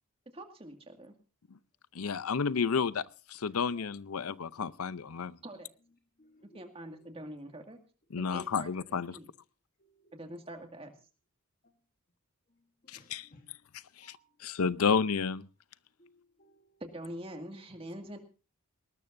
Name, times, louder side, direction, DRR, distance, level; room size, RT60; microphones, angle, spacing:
voice 1, 0.3-1.1 5.4-5.7 6.5-7.8 8.2-8.7 9.1-9.3 10.1-10.9 16.8-18.2, right 1 dB, 25° right, 4 dB, 2.1 m, -44 dB
voice 2, 1.9-3.0 3.3-5.4 8.1-9.2 12.9-13.3 14.4-15.4, left 5 dB, 85° left, 17 dB, 0.6 m, -31 dB
voice 3, 6.2-6.7 9.8-10.1 11.6-11.8 12.8-13.5 14.0-14.3 16.0-16.8, left 1 dB, 40° left, 5 dB, 1.3 m, -61 dB
19.0 x 19.0 x 2.6 m, 0.33 s
head